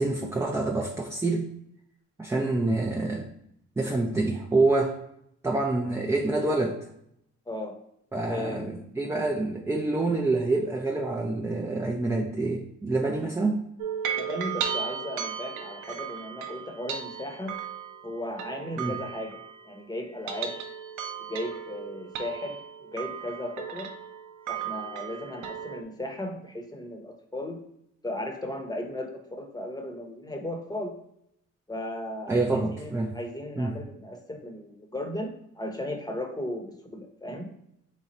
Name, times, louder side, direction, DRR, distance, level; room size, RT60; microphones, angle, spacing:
voice 1, 0.0-1.5 2.2-3.2 3.8-4.9 5.4-6.8 8.1-13.6 18.8-19.0 32.3-33.1 33.6-33.7, right 2 dB, 10° right, 0 dB, 0.4 m, -27 dB
voice 2, 7.5-7.8 8.3-8.8 14.1-17.6 18.0-19.4 19.6-20.5 21.3-22.6 22.9-23.9 24.5-27.6 28.0-31.0 31.7-35.3 35.6-37.5, left 1 dB, 15° left, 3 dB, 0.9 m, -36 dB
sound 1, 13.8-19.8 20.1-25.8, right 7 dB, 85° right, 0.6 m, -36 dB
4.1 x 2.4 x 4.2 m, 0.76 s
cardioid pair, 90°, 30 cm